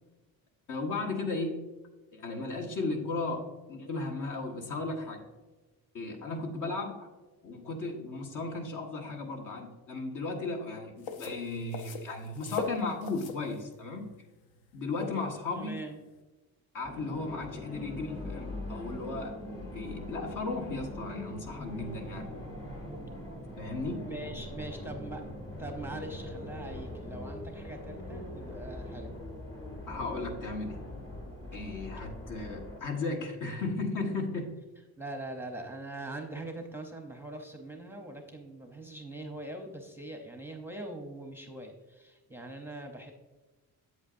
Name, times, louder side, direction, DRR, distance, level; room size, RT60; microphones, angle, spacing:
voice 1, 0.7-1.6 2.1-5.2 5.9-7.1 7.4-14.1 14.7-15.8 16.7-22.3 23.6-24.1 29.9-30.8 31.5-34.5, left 3 dB, 60° left, 2 dB, 1.5 m, -35 dB
sound 1, 11.0-16.2, left 4 dB, 80° left, 0.8 m, -41 dB
voice 2, 15.6-16.0 24.1-25.3 25.6-29.1 35.0-43.1, right 2 dB, 5° right, 3 dB, 0.7 m, -42 dB
sound 2, 16.8-32.8, left 1 dB, 35° left, 2.2 m, -42 dB
8.1 x 8.1 x 2.6 m, 1.2 s
cardioid pair, 140°, 37 cm